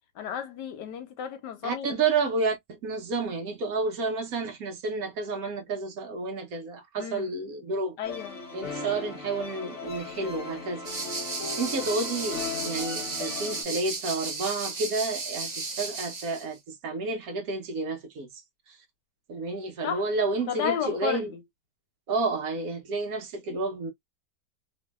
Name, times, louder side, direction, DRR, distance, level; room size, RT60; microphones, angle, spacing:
voice 1, 0.1-2.0 7.0-7.3 8.0-8.4 19.8-20.0 20.5-21.4, left 8 dB, 85° left, 1.4 m, -33 dB
voice 2, 1.6-8.0 8.5-10.9 11.4-18.8 19.3-21.3 22.1-23.9, right 3 dB, 65° right, 1.1 m, -30 dB
sound 1, 8.0-13.6, left 4 dB, 55° left, 1.0 m, -37 dB
sound 2, 10.9-16.5, right 3 dB, 40° right, 0.6 m, -34 dB
2.9 x 2.7 x 2.2 m
omnidirectional pair, 1.8 m